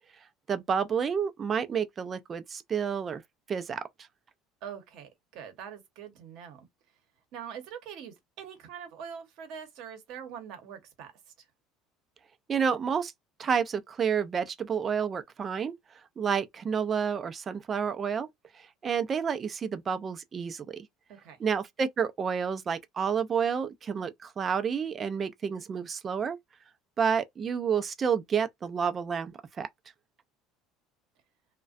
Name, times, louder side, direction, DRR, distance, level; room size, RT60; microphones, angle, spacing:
voice 1, 0.5-3.2 3.5-3.8 12.5-13.1 13.4-15.7 16.2-18.3 18.5-20.9 21.4-26.4 27.0-29.7, right 7 dB, 35° right, 0.4 m, -30 dB
voice 2, 4.6-6.7 7.3-11.5 21.1-21.4, right 8 dB, 65° right, 0.8 m, -44 dB
2.3 x 2.1 x 2.5 m
supercardioid pair, 90°, 0 cm